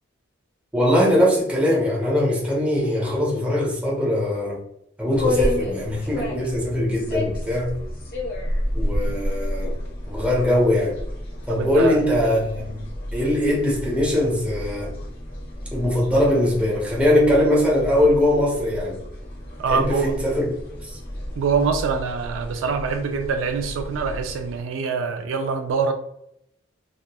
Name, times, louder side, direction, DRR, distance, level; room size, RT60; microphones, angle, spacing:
voice 1, 0.7-4.6 5.0-7.8 8.7-9.8 10.1-11.0 11.5-12.8 13.1-14.9 15.7-19.0 19.7-20.5 20.9-21.0, left 1 dB, 5° right, 0.8 m, -21 dB
sound 1, 5.1-24.6, left 1 dB, 50° left, 1.0 m, -31 dB
voice 2, 11.5-12.0 19.6-20.2 21.4-25.9, right 5 dB, 80° right, 0.3 m, -24 dB
2.9 x 2.2 x 2.2 m
head